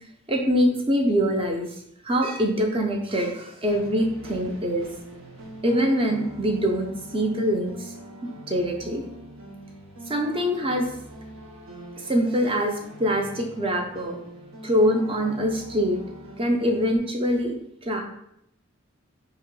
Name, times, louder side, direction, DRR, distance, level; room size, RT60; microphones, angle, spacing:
voice 1, 0.3-1.7 2.0-4.9 5.6-7.9 8.5-9.0 10.1-10.9 12.0-14.2 14.6-16.0 16.4-17.5 17.8-18.0, equal, 25° right, 2 dB, 0.5 m, -24 dB
sound 1, 3.6-17.0, right 1 dB, 70° right, 0.8 m, -43 dB
3.0 x 2.9 x 4.6 m, 0.76 s
head